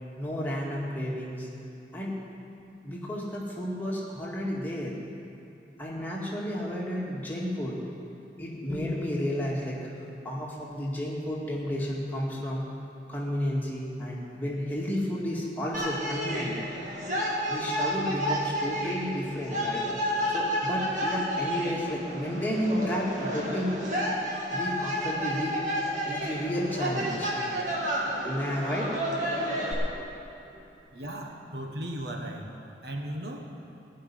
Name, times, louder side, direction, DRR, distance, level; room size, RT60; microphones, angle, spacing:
voice 1, 0.2-1.5 1.9-2.2 2.8-5.0 5.8-7.8 8.4-9.9 10.2-12.7 13.1-16.6 17.5-19.9 20.3-23.8 24.5-25.6 26.1-27.4 28.2-29.0 29.8-29.9, equal, 10° left, -5 dB, 2.0 m, -32 dB
sound 1, 15.7-29.7, equal, 45° right, 2.1 m, -31 dB
voice 2, 30.9-32.5 32.8-33.5, right 1 dB, 70° right, 2 dB, 1.3 m, -36 dB
17.0 x 5.7 x 9.9 m, 2.9 s
head